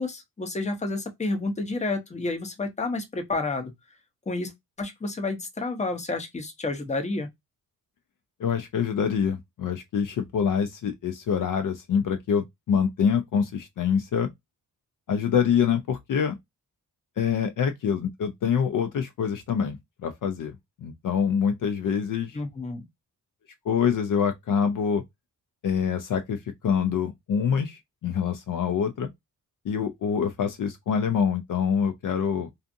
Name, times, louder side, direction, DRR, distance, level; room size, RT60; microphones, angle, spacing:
voice 1, 0.0-3.7 4.3-4.5 4.8-7.3 22.3-22.8, left 3 dB, 20° left, 0.7 m, -30 dB
voice 2, 8.4-14.3 15.1-16.4 17.2-19.8 20.0-22.4 23.6-25.0 25.6-29.1 29.6-32.5, left 7 dB, 60° left, 0.5 m, -25 dB
2.5 x 2.4 x 2.5 m
cardioid pair, 85°, 36 cm